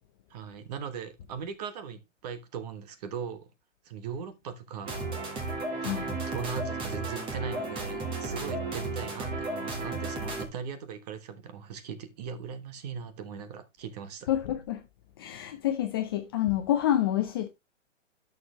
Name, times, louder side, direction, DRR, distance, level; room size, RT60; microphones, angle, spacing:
voice 1, 0.3-3.5 3.8-5.1 5.8-14.3, right 6 dB, 30° right, 1.3 m, -39 dB
sound 1, 4.8-10.4, right 2 dB, 15° right, 1.6 m, -34 dB
voice 2, 14.3-14.8 15.2-17.5, left 12 dB, 20° left, 0.6 m, -28 dB
10.5 x 6.7 x 3.2 m
hypercardioid pair, 155°, 38 cm